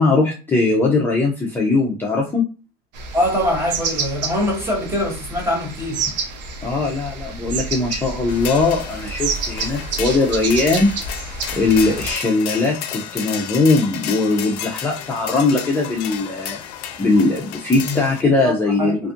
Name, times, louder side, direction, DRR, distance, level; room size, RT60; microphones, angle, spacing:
voice 1, 0.0-2.4 6.6-10.9 11.6-16.6 17.0-19.0, left 3 dB, 10° left, 0.5 m, -19 dB
sound 1, 2.9-12.1, right 4 dB, 85° right, 0.6 m, -29 dB
voice 2, 3.1-6.0 17.8-18.5 18.8-18.9, left 1 dB, 10° right, 0.9 m, -23 dB
sound 2, 8.3-18.2, left 9 dB, 65° left, 0.5 m, -32 dB
2.6 x 2.3 x 2.5 m
supercardioid pair, 115°, 21 cm